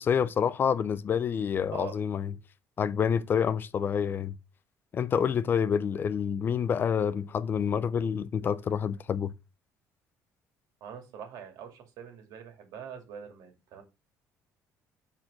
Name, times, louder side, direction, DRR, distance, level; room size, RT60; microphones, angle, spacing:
voice 1, 0.0-2.3 2.8-4.3 4.9-9.3, left 7 dB, 35° left, 0.4 m, -28 dB
voice 2, 10.8-13.8, right 7 dB, 75° right, 2.2 m, -43 dB
6.1 x 4.4 x 4.8 m
cardioid pair, 140°, 6 cm